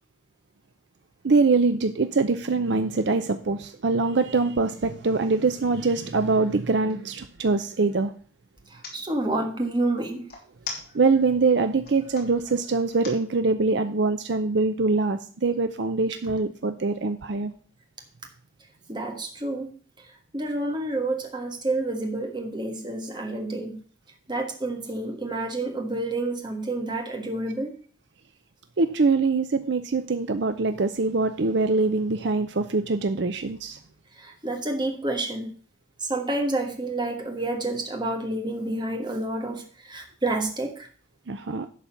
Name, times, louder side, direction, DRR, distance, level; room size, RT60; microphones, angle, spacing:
voice 1, 1.2-8.1 10.9-17.5 28.8-33.8 41.3-41.7, right 3 dB, 60° right, 9 dB, 0.6 m, -23 dB
sound 1, 6.2-7.7 8.6-9.0 10.3-11.3 11.7-12.2 12.9-13.2, left 4 dB, 50° left, 3.3 m, -39 dB
voice 2, 8.7-10.3 18.9-19.7 20.0-20.1 20.3-23.8 24.3-27.8 34.2-35.5 36.0-40.9, right 2 dB, 25° right, 3 dB, 1.5 m, -29 dB
11.5 x 4.2 x 7.2 m, 0.44 s
head